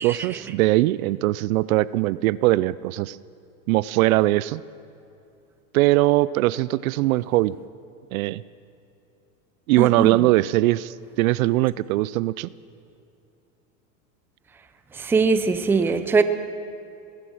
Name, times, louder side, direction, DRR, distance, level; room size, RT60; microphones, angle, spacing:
voice 1, 0.0-3.2 3.7-4.6 5.7-7.5 8.1-8.4 9.7-12.5, right 17 dB, 70° right, 20 dB, 0.5 m, -21 dB
voice 2, 9.8-10.2 14.9-16.2, right 4 dB, 5° right, 10 dB, 0.4 m, -21 dB
18.0 x 11.5 x 6.3 m, 2.6 s
hypercardioid pair, 115°, 43 cm